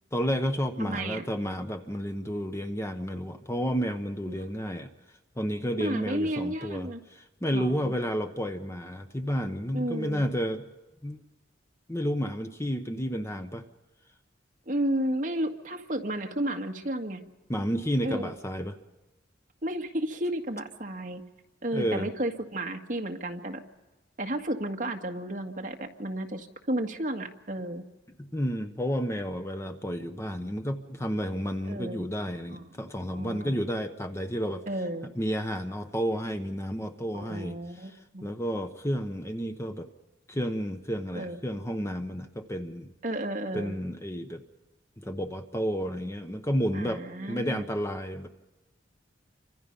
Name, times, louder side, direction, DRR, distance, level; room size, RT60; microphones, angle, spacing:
voice 1, 0.1-4.9 5.4-10.7 11.0-11.2 11.9-13.7 17.5-18.8 21.7-22.1 28.2-34.6 35.1-38.0 38.2-39.9 40.3-42.9 43.5-44.4 45.0-48.3, equal, 15° left, 6 dB, 1.0 m, -31 dB
voice 2, 0.8-1.3 4.3-4.4 5.8-7.0 7.5-7.9 9.7-10.3 14.7-17.2 18.0-18.3 19.6-21.2 21.6-23.6 24.2-27.8 31.7-32.1 32.5-32.7 33.1-33.6 34.7-35.1 37.1-38.3 41.1-41.4 43.0-43.8 46.7-47.6, right 1 dB, 45° right, 3 dB, 1.9 m, -32 dB
28.5 x 25.5 x 5.5 m, 1.1 s
head